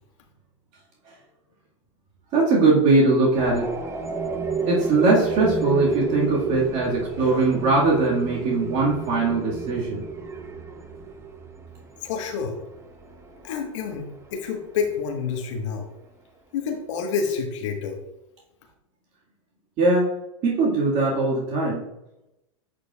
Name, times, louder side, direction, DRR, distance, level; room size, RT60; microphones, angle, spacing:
voice 1, 2.3-3.7 4.7-10.0 19.8-20.1 20.4-21.8, right 3 dB, 45° right, -4 dB, 2.1 m, -21 dB
sound 1, 3.4-15.0, right 4 dB, 15° right, 0.9 m, -31 dB
voice 2, 12.0-12.6 13.4-15.9 16.5-18.0, left 6 dB, 65° left, 3 dB, 1.5 m, -28 dB
10.0 x 4.8 x 2.5 m, 0.90 s
hypercardioid pair, 95°, 17 cm